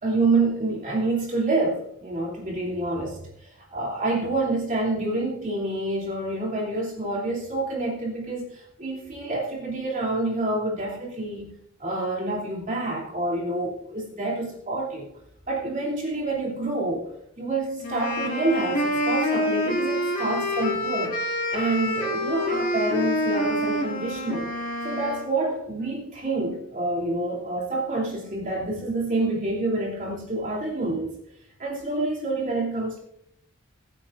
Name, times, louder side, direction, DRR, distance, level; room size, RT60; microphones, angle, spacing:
voice 1, 0.0-11.5 11.8-15.1 15.5-21.1 21.5-24.5 24.8-31.1 31.6-33.0, right 2 dB, 40° right, -3 dB, 2.9 m, -27 dB
sound 1, 17.8-25.3, left 1 dB, 45° left, 2.2 m, -27 dB
22.0 x 9.0 x 2.6 m, 0.76 s
head